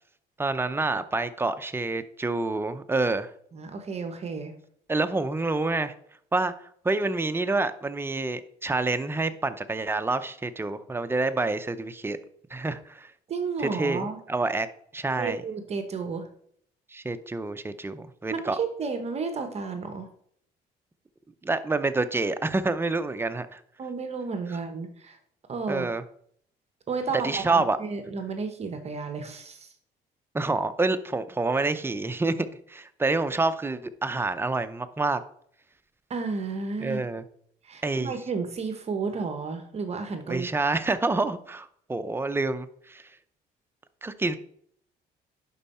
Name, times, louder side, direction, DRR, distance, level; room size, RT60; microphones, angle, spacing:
voice 1, 0.4-3.3 4.9-5.9 6.3-6.5 6.8-12.2 12.5-13.1 13.6-14.7 14.9-15.4 16.9-18.6 21.4-23.6 25.7-26.0 27.2-27.8 30.3-32.3 32.7-35.2 36.8-37.2 37.8-38.1 40.3-43.0 44.0-44.4, right 3 dB, 15° right, 10 dB, 0.6 m, -27 dB
voice 2, 3.5-4.5 13.3-14.2 15.2-16.3 18.3-20.1 23.8-25.2 25.5-25.9 26.9-29.7 36.1-37.0 37.6-40.5, right 4 dB, 40° right, 7 dB, 1.0 m, -32 dB
11.0 x 4.6 x 4.3 m, 0.65 s
cardioid pair, 110°, 17 cm